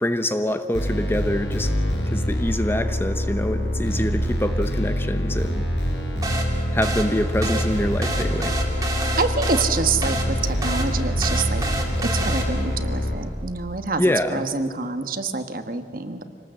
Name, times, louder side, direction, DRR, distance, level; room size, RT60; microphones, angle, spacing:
voice 1, 0.0-1.7 2.1-5.7 6.7-8.5 14.0-14.4, left 1 dB, 15° left, 9 dB, 0.8 m, -25 dB
sound 1, 0.7-13.1, equal, 85° left, 4.4 m, -25 dB
sound 2, 6.2-12.8, right 1 dB, 20° right, 2.6 m, -30 dB
voice 2, 9.2-11.6 12.0-14.0 14.3-16.2, right 4 dB, 50° right, 8 dB, 1.3 m, -26 dB
25.5 x 19.5 x 7.7 m, 2.3 s
head